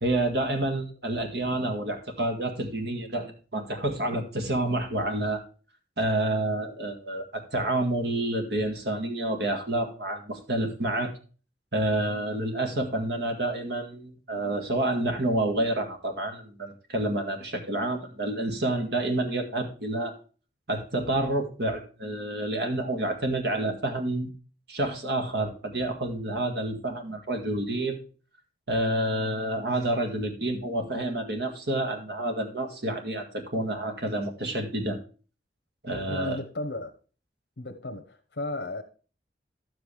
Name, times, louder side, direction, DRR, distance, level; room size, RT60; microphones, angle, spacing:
voice 1, 0.0-5.4 6.0-11.1 11.7-20.1 20.7-24.3 24.7-28.0 28.7-35.0 35.8-36.4, right 1 dB, 65° right, 1.9 m, -29 dB
voice 2, 36.1-36.9 37.6-38.8, left 2 dB, 75° left, 1.0 m, -34 dB
11.5 x 7.9 x 3.3 m
head